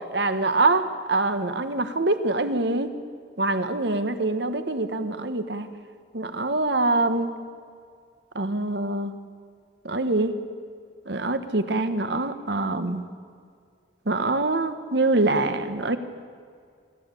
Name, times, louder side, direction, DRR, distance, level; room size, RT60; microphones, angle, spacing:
voice 1, 0.1-2.9 3.4-5.7 6.1-7.3 8.3-9.1 9.8-10.3 11.1-13.0 14.1-16.0, right 2 dB, 65° right, 10 dB, 1.2 m, -24 dB
25.5 x 13.0 x 8.3 m, 2.2 s
head